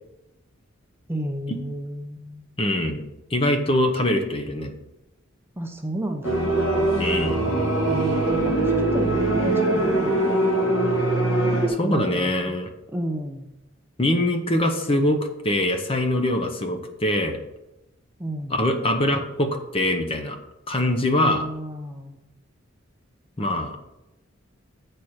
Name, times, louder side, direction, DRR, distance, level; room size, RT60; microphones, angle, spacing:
voice 1, 1.1-2.4 5.6-6.4 7.9-10.4 11.8-12.6 12.9-13.5 18.2-18.6 21.2-22.2, right 1 dB, 10° right, 3 dB, 0.6 m, -32 dB
voice 2, 2.6-3.0 3.3-4.7 7.0-7.4 11.7-12.7 14.0-17.4 18.5-20.4 20.7-21.5 23.4-23.8, left 1 dB, 25° left, 6 dB, 0.8 m, -23 dB
sound 1, 6.2-11.7, right 2 dB, 75° left, 1.8 m, -22 dB
8.2 x 4.4 x 6.4 m, 0.93 s
head